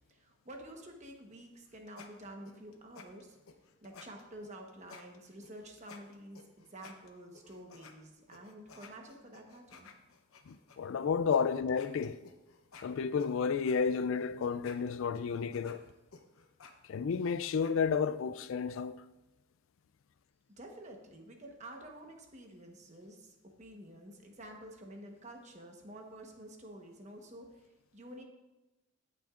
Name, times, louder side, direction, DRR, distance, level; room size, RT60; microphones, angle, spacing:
voice 1, 0.1-3.4 3.8-9.9 20.6-27.6 27.9-28.2, right 1 dB, 35° right, 1.1 m, -50 dB
sound 1, 1.5-7.9 8.3-10.8 11.3-11.4 11.7-17.7, left 5 dB, 85° left, 0.9 m, -55 dB
voice 2, 10.5-12.2 12.8-15.8 16.9-19.0, left 6 dB, 70° left, 0.3 m, -31 dB
17.0 x 6.1 x 2.5 m
head